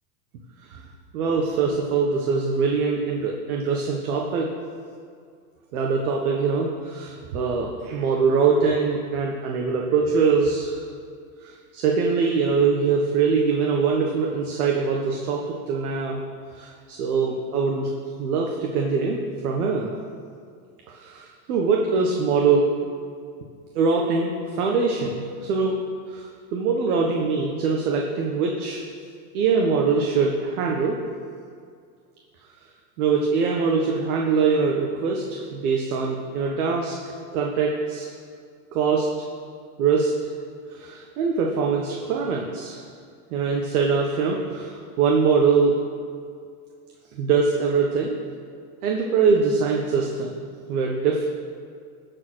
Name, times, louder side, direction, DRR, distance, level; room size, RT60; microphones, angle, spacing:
voice 1, 1.1-4.5 5.7-10.8 11.4-16.2 16.6-17.9 18.2-19.2 19.4-19.9 21.0-22.7 23.7-25.7 26.1-26.2 26.5-28.8 29.3-31.0 33.0-36.9 37.3-38.1 38.7-39.1 39.8-40.1 40.8-42.8 43.3-45.7 47.2-48.2 48.8-50.3 50.7-51.3, right 5 dB, 70° right, 0 dB, 1.5 m, -23 dB
15.0 x 5.1 x 6.2 m, 2.2 s
supercardioid pair, 130°, 45 cm